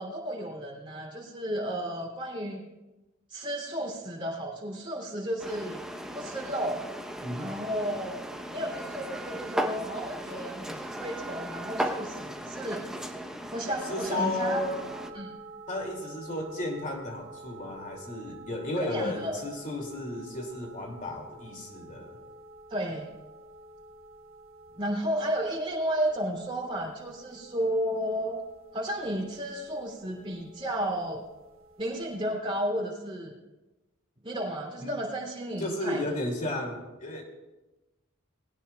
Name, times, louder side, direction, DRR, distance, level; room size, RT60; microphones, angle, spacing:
voice 1, 0.0-2.6 3.3-5.8 6.1-6.8 7.4-8.2 8.5-12.8 13.5-14.6 15.1-15.4 18.8-19.4 22.7-23.1 24.8-28.4 28.7-31.2 31.8-33.3 34.2-36.0, right 1 dB, 25° right, -2 dB, 3.0 m, -33 dB
sound 1, 5.4-15.1, equal, 5° right, 0.8 m, -37 dB
voice 2, 13.8-14.8 15.7-22.2 34.8-35.0 35.6-37.2, left 2 dB, 40° left, 2 dB, 2.6 m, -33 dB
sound 2, 13.8-32.4, right 2 dB, 70° right, 1.4 m, -49 dB
19.5 x 16.5 x 2.3 m, 1.1 s
head